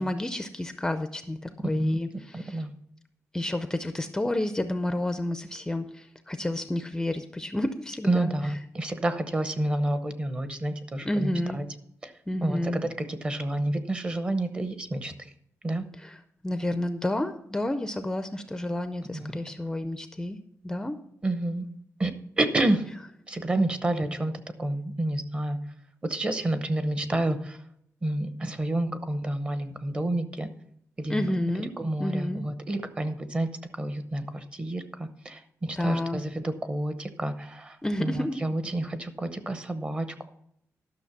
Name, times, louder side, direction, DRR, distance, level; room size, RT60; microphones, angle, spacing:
voice 1, 0.0-2.6 3.3-8.3 11.0-11.6 12.3-12.8 16.0-16.2 16.4-20.4 20.6-21.0 31.1-31.7 32.0-32.4 35.7-36.2 37.8-38.4, left 1 dB, 10° left, 8 dB, 0.5 m, -30 dB
voice 2, 1.6-2.0 2.3-2.7 8.0-11.7 12.0-12.1 12.4-15.3 15.6-15.8 19.1-19.4 21.2-21.7 22.0-22.9 23.3-25.6 26.0-27.6 28.0-30.5 31.0-31.3 31.8-40.3, right 1 dB, 20° right, 10 dB, 0.8 m, -29 dB
11.5 x 6.3 x 6.0 m, 0.70 s
wide cardioid pair, 170°, 5 cm